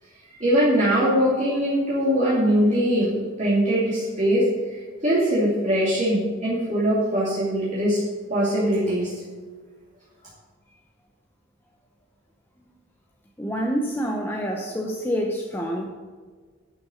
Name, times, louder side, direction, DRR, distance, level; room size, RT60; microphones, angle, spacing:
voice 1, 0.4-8.0 8.3-9.1, equal, 35° right, -8 dB, 2.6 m, -22 dB
voice 2, 13.4-15.8, equal, 10° left, 0 dB, 0.9 m, -27 dB
11.0 x 7.0 x 6.4 m, 1.5 s
head